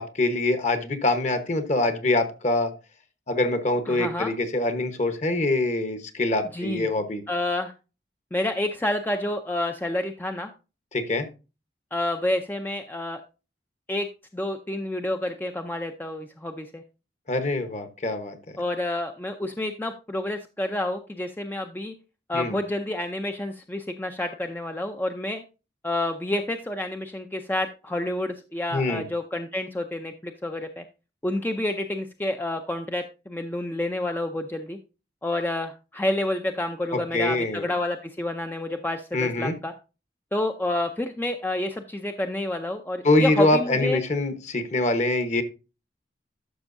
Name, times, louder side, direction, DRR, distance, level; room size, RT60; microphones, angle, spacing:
voice 1, 0.0-2.7 3.3-7.2 10.9-11.3 17.3-18.4 22.3-22.5 28.7-29.0 36.9-37.7 39.1-39.5 43.0-45.4, left 2 dB, 40° left, 8 dB, 1.1 m, -24 dB
voice 2, 3.9-4.3 6.5-6.9 7.3-7.7 8.3-10.5 11.9-13.2 13.9-14.1 14.3-16.8 18.6-21.9 22.3-25.4 25.8-30.8 31.2-34.8 35.2-39.7 40.3-44.0, left 1 dB, 10° left, 5 dB, 0.5 m, -29 dB
11.5 x 6.2 x 2.6 m, 0.30 s
head